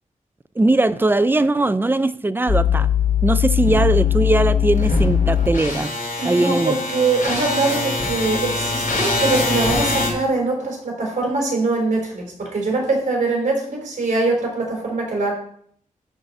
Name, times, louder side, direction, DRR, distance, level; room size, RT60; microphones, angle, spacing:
voice 1, 0.6-2.9 3.2-5.9 6.2-6.8, right 2 dB, 15° right, 14 dB, 0.4 m, -19 dB
sound 1, 2.5-10.1, left 5 dB, 85° left, 2.4 m, -21 dB
voice 2, 6.2-15.3, right 3 dB, 60° right, -1 dB, 3.9 m, -22 dB
12.0 x 4.1 x 5.4 m, 0.63 s
wide cardioid pair, 120°, 14 cm